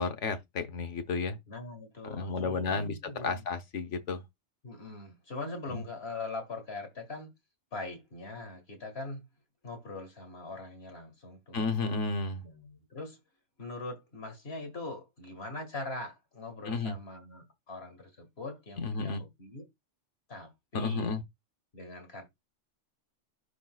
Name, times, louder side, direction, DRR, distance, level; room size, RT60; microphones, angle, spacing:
voice 1, 0.0-1.4 2.0-2.9 3.2-4.2 5.7-5.8 11.5-12.4 16.7-16.9 18.8-19.2 20.7-21.2, left 4 dB, 75° left, 1.3 m, -32 dB
voice 2, 1.5-3.4 4.6-7.3 7.7-9.2 9.6-11.7 12.4-13.2 13.6-19.6 20.3-21.2 21.7-22.3, left 2 dB, 55° left, 2.1 m, -42 dB
12.0 x 4.0 x 2.3 m
omnidirectional pair, 1.2 m